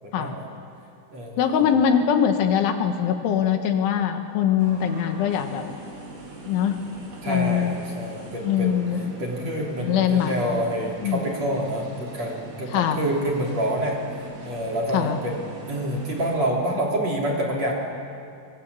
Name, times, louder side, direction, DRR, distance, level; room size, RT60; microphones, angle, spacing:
voice 1, 0.0-0.4 1.1-1.7 7.2-8.8 9.2-14.0 14.4-17.7, right 1 dB, 35° right, -2 dB, 3.8 m, -27 dB
voice 2, 1.4-5.7 6.5-6.8 7.3-7.8 8.4-9.0 9.8-10.6 11.0-11.2 12.7-13.0 14.9-15.2, left 8 dB, 75° left, 6 dB, 3.6 m, -22 dB
sound 1, 4.6-16.4, right 2 dB, 60° right, 6.4 m, -42 dB
30.0 x 23.5 x 8.4 m, 2.5 s
omnidirectional pair, 5.8 m